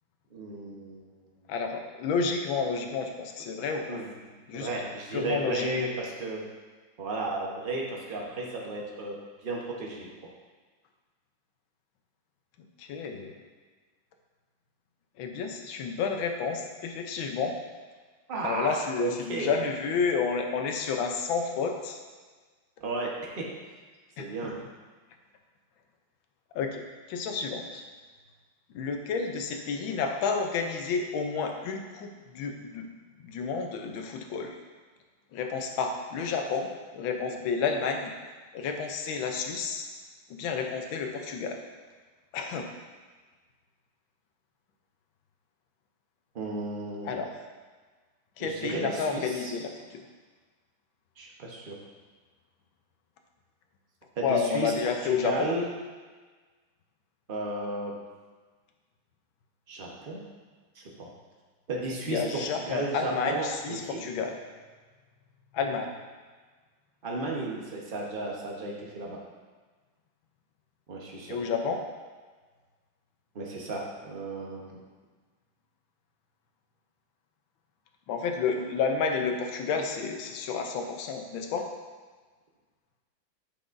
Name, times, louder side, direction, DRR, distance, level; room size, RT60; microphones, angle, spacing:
voice 1, 0.3-1.1 1.4-1.5 3.9-4.1 4.5-6.4 7.0-9.1 9.4-10.1 18.3-19.5 22.8-23.5 24.2-24.5 46.3-47.2 48.4-49.5 51.2-51.8 54.1-54.7 55.0-55.7 57.3-57.9 59.7-60.2 60.7-61.1 61.7-64.0 67.0-69.2 70.9-71.4 73.3-74.8, right 2 dB, 35° right, -2 dB, 0.9 m, -34 dB
voice 2, 1.5-4.0 4.5-4.7 5.1-5.9 12.8-13.3 15.2-17.5 18.4-22.0 24.2-24.5 26.5-26.8 27.1-27.8 28.7-32.9 33.2-34.6 35.3-38.1 38.5-39.9 40.4-41.6 42.3-42.7 47.0-47.3 48.4-50.0 54.2-55.5 62.1-64.4 65.5-66.0 71.3-71.8 78.1-81.7, left 5 dB, 85° left, 4 dB, 1.5 m, -30 dB
8.4 x 5.9 x 2.6 m, 1.4 s
omnidirectional pair, 2.1 m